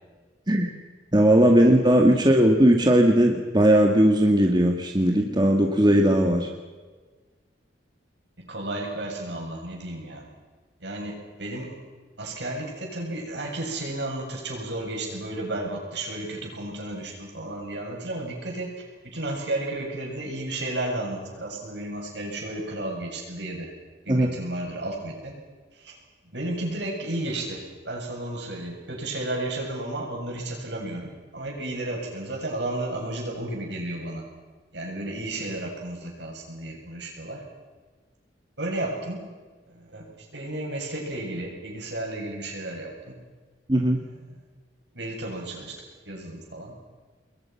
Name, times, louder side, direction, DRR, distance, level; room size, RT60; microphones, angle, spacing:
voice 1, 1.1-6.5 24.1-24.3 43.7-44.0, right 1 dB, 25° right, 2 dB, 2.0 m, -18 dB
voice 2, 8.4-10.2 10.8-11.8 12.2-23.7 24.0-25.3 25.7-26.0 26.3-34.2 34.7-37.4 38.6-39.3 39.7-43.2 44.9-46.8, right 1 dB, 65° right, 0 dB, 7.7 m, -33 dB
29.0 x 22.0 x 5.9 m, 1.4 s
head